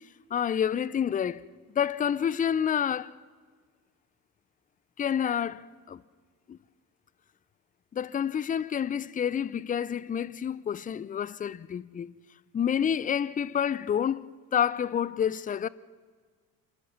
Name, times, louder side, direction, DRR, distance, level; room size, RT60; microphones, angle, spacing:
voice 1, 0.3-1.4 1.7-3.1 5.0-6.0 6.5-6.6 7.9-12.1 12.5-15.7, left 8 dB, 20° left, 0.5 m, -28 dB
26.5 x 14.0 x 7.4 m
figure-of-eight pair, 60°, 45 cm